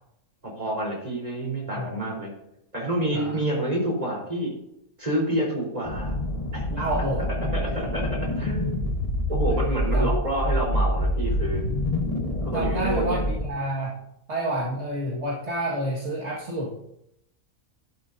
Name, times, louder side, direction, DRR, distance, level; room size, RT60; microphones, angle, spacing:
voice 1, 0.6-2.3 2.7-4.5 5.0-6.2 6.5-6.8 7.5-8.9 9.3-11.6 12.4-13.2, right 1 dB, 25° right, -2 dB, 4.2 m, -28 dB
voice 2, 1.7-2.1 3.1-3.4 6.7-7.6 9.9-10.1 12.5-14.0 14.3-16.8, right 1 dB, 50° right, -4 dB, 2.1 m, -29 dB
sound 1, 5.8-13.5, left 1 dB, 25° left, 1.3 m, -26 dB
12.5 x 11.5 x 2.7 m, 0.78 s
omnidirectional pair, 1.5 m